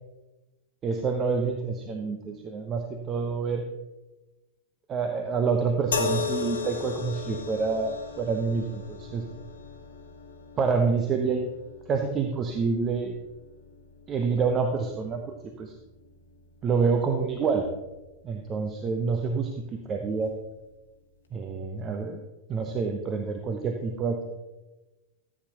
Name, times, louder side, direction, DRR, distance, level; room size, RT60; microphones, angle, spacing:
voice 1, 0.8-3.6 4.9-9.2 10.6-11.5 11.9-13.2 14.1-15.7 16.6-17.7 18.2-20.3 21.3-22.2 22.5-24.3, right 5 dB, 25° right, 4 dB, 0.9 m, -27 dB
sound 1, 5.9-19.2 20.2-20.4, left 5 dB, 65° left, 1.2 m, -38 dB
14.5 x 8.8 x 2.9 m, 1.1 s
figure-of-eight pair, 90°, 0 cm